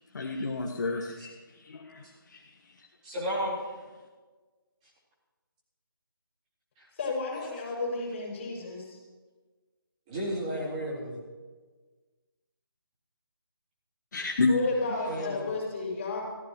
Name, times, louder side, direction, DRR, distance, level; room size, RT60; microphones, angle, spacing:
voice 1, 0.1-2.4 14.1-14.5, left 3 dB, 50° left, 1 dB, 1.4 m, -30 dB
voice 2, 3.0-3.6 10.1-11.2 15.1-15.4, equal, 20° right, -6 dB, 4.0 m, -32 dB
voice 3, 7.0-9.0 14.5-16.2, left 3 dB, 30° left, -3 dB, 5.9 m, -32 dB
25.0 x 15.0 x 3.1 m, 1.4 s
figure-of-eight pair, 160°, 12 cm